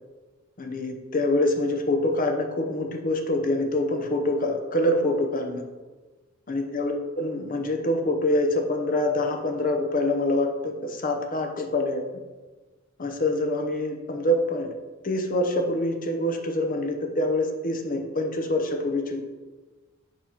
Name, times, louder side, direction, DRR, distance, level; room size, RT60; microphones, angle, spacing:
voice 1, 0.6-5.6 6.5-12.0 13.0-14.7 15.0-19.2, left 1 dB, 45° left, 4 dB, 0.8 m, -25 dB
7.0 x 3.0 x 5.6 m, 1.3 s
head